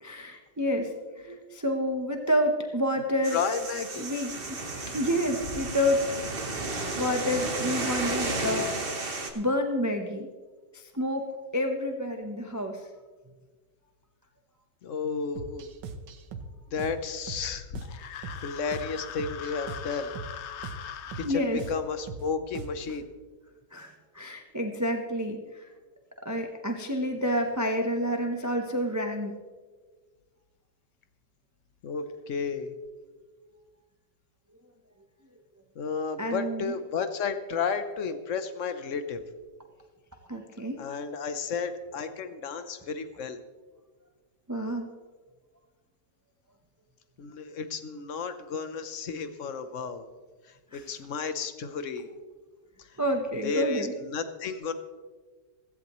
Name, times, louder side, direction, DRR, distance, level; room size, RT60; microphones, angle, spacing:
voice 1, 0.0-3.4 4.0-6.0 7.0-8.7 9.3-10.3 10.7-12.9 21.2-21.6 23.7-25.6 26.2-29.4 36.2-36.7 40.3-40.8 44.5-44.9 50.7-51.0 53.0-53.9, equal, 20° right, 3 dB, 0.5 m, -29 dB
sound 1, 3.2-9.3, right 2 dB, 35° right, 1.3 m, -33 dB
voice 2, 3.3-4.1 14.8-15.7 16.7-17.8 18.1-20.1 21.2-23.1 31.8-32.7 35.8-39.2 40.8-43.4 47.2-50.1 50.7-52.1 53.4-54.7, left 5 dB, 55° left, 10 dB, 1.0 m, -32 dB
sound 2, 15.4-23.0, right 4 dB, 75° right, 1.6 m, -41 dB
sound 3, 17.8-21.3, left 9 dB, 85° left, 0.6 m, -41 dB
16.0 x 15.0 x 3.1 m, 1.4 s
omnidirectional pair, 1.9 m